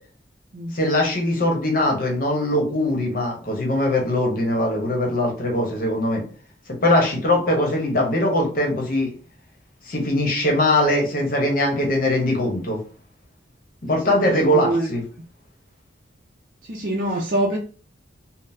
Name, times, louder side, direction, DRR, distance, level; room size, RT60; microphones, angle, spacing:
voice 1, 0.7-6.2 6.8-9.1 9.8-12.8 13.8-15.0, left 1 dB, 50° left, 0 dB, 0.9 m, -21 dB
voice 2, 14.0-14.9 16.7-17.6, right 1 dB, 50° right, -3 dB, 0.5 m, -25 dB
3.7 x 2.0 x 2.6 m, 0.40 s
head